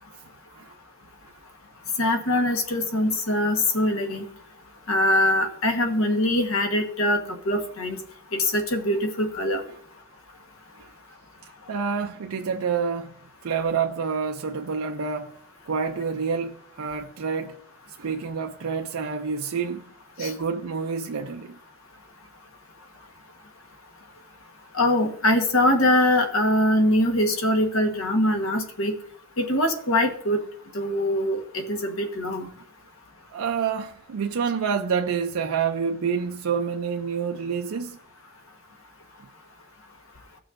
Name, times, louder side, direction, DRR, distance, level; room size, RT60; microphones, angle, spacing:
voice 1, 2.0-4.3 4.9-7.2 7.4-8.0 8.3-9.6 20.2-20.3 24.7-28.9 29.4-30.4 30.7-32.5, left 1 dB, 80° left, 1.3 m, -23 dB
voice 2, 11.7-13.2 13.4-15.3 15.7-17.6 18.0-19.9 20.2-21.6 33.3-38.0, right 6 dB, 85° right, 0.5 m, -28 dB
16.0 x 6.1 x 2.6 m
head